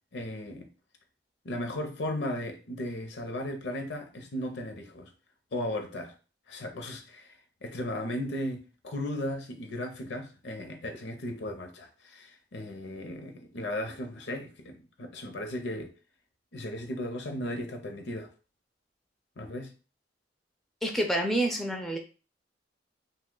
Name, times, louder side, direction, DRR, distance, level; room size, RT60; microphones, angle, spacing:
voice 1, 0.1-0.7 1.4-5.1 5.5-6.1 6.5-15.9 16.5-18.3 19.4-19.7, left 1 dB, 70° left, 0.6 m, -36 dB
voice 2, 20.8-22.0, right 1 dB, ahead, 0.3 m, -28 dB
2.8 x 2.2 x 3.7 m
head